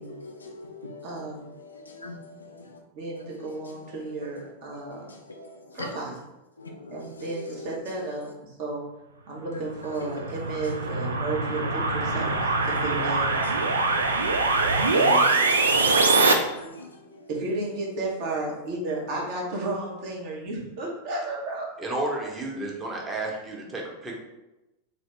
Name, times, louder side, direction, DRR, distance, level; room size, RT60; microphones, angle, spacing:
voice 1, 0.0-2.8 3.2-6.1 6.6-8.3 9.5-10.9 12.6-12.8 13.3-13.7 15.0-15.6 15.9-17.3 18.7-18.8, left 2 dB, 75° left, 0.5 m, -43 dB
voice 2, 1.0-1.5 2.9-5.0 5.7-6.1 6.9-8.8 9.3-13.3 14.9-15.3 17.3-21.7, right 2 dB, 45° right, 1.0 m, -33 dB
sound 1, 9.8-16.3, right 3 dB, 70° right, 0.3 m, -23 dB
voice 3, 21.8-24.2, right 2 dB, 15° right, 0.8 m, -32 dB
2.8 x 2.7 x 3.3 m
figure-of-eight pair, 90°, 0 cm